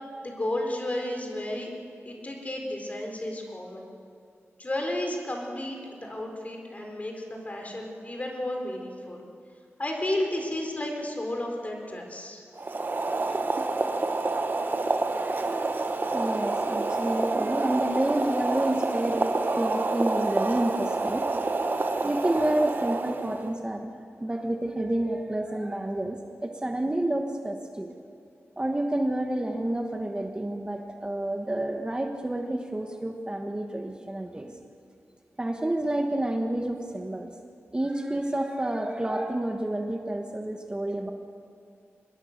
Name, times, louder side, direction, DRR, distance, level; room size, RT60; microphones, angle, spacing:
voice 1, 0.2-1.7 2.0-3.9 4.6-9.3 9.8-12.4, left 1 dB, 30° left, 1 dB, 4.1 m, -32 dB
Boiling, 12.5-23.5, right 3 dB, 45° right, 1.2 m, -28 dB
voice 2, 15.4-15.9 16.1-21.3 22.0-23.9 24.2-27.9 28.6-34.6 35.4-37.3 37.7-41.1, right 1 dB, 20° right, 3 dB, 1.3 m, -29 dB
25.0 x 20.5 x 6.6 m, 2.3 s
wide cardioid pair, 110°, 5 cm